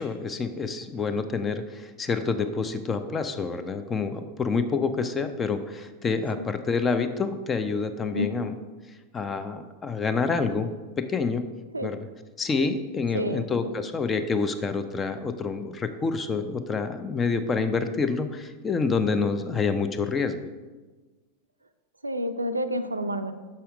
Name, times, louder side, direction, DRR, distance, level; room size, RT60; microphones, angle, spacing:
voice 1, 0.0-8.5 9.1-11.5 11.8-12.0 12.4-20.5, left 4 dB, 20° left, 10 dB, 0.5 m, -27 dB
voice 2, 13.1-13.5 22.0-23.3, equal, 80° right, 9 dB, 0.4 m, -29 dB
6.3 x 5.6 x 4.8 m, 1.3 s
figure-of-eight pair, 90°, 0 cm